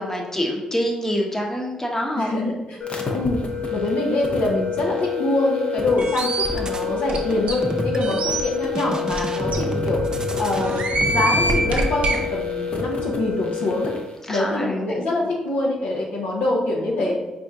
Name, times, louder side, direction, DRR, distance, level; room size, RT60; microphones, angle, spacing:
voice 1, 0.0-2.3 14.2-15.1, equal, 15° left, 0 dB, 0.9 m, -26 dB
voice 2, 2.2-2.8 3.1-3.4 3.7-10.1 10.4-13.9 14.3-17.2, left 2 dB, 80° left, -2 dB, 0.7 m, -24 dB
sound 1, 2.8-14.1, left 6 dB, 50° left, 0.7 m, -28 dB
sound 2, 6.0-6.9 7.3-8.2 8.6-11.8, right 2 dB, 30° right, 0.5 m, -30 dB
sound 3, 6.0-6.5 7.1-7.2 7.5-7.6 8.0-8.4 9.1-9.2 9.5-9.6 10.6-12.2, right 2 dB, 60° right, 0.7 m, -24 dB
4.2 x 2.6 x 3.5 m, 1.1 s
supercardioid pair, 50°, 3 cm